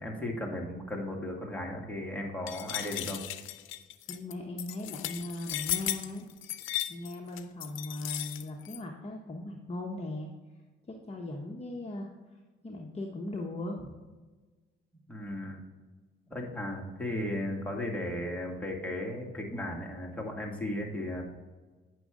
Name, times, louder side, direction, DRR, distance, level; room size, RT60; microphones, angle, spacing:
voice 1, 0.0-3.2 15.1-15.6 16.3-21.2, left 1 dB, 5° left, -1 dB, 2.1 m, -35 dB
sound 1, 2.5-8.8, left 13 dB, 80° left, 0.6 m, -36 dB
voice 2, 4.1-6.3 6.9-10.3 10.9-12.1 12.6-13.9, left 2 dB, 30° left, 0 dB, 1.0 m, -38 dB
8.9 x 6.2 x 3.7 m, 1.3 s
cardioid pair, 90°, 20 cm